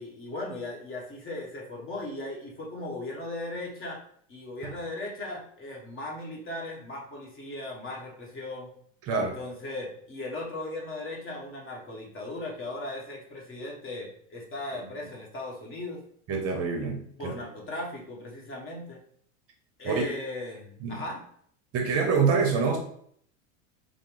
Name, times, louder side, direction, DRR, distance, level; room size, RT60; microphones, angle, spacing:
voice 1, 0.0-4.0 4.3-8.7 9.1-16.0 17.2-19.0 19.8-21.2, left 2 dB, 30° left, -1 dB, 1.1 m, -37 dB
voice 2, 9.0-9.4 16.3-17.3 19.8-20.1 20.8-21.0 21.7-22.8, right 5 dB, 35° right, 3 dB, 0.7 m, -26 dB
4.8 x 2.1 x 3.0 m, 0.63 s
supercardioid pair, 115°, 40 cm